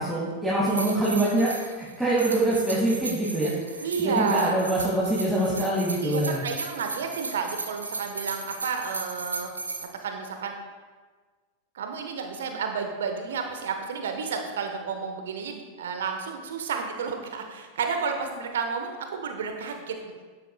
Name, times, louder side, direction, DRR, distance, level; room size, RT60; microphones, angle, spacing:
voice 1, 0.0-6.4, right 1 dB, 5° right, -8 dB, 2.3 m, -25 dB
sound 1, 0.7-9.9, right 4 dB, 75° right, 1.0 m, -36 dB
voice 2, 3.8-4.6 6.0-9.5 9.8-10.6 11.7-20.2, right 5 dB, 60° right, 5 dB, 1.2 m, -31 dB
11.5 x 11.0 x 2.4 m, 1.4 s
figure-of-eight pair, 90°, 0 cm